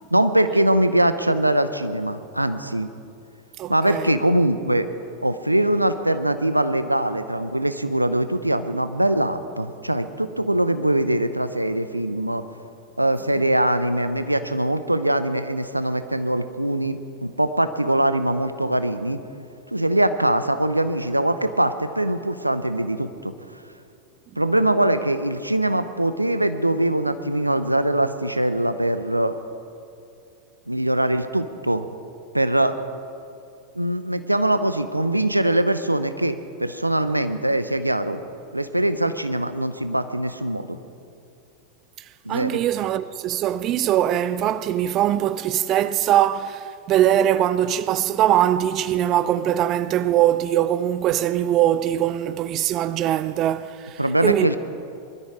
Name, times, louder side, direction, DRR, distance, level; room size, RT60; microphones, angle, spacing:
voice 1, 0.1-2.9 3.7-4.9 5.2-12.4 13.0-19.2 19.7-23.3 24.4-29.3 30.7-31.9 32.3-32.7 33.7-38.2 38.5-40.8 42.2-42.6 54.0-54.6, right 1 dB, 85° right, 0.7 m, -22 dB
voice 2, 3.6-4.1 42.3-54.6, right 11 dB, 35° right, 0.4 m, -22 dB
20.5 x 13.0 x 5.0 m
figure-of-eight pair, 90°, 0 cm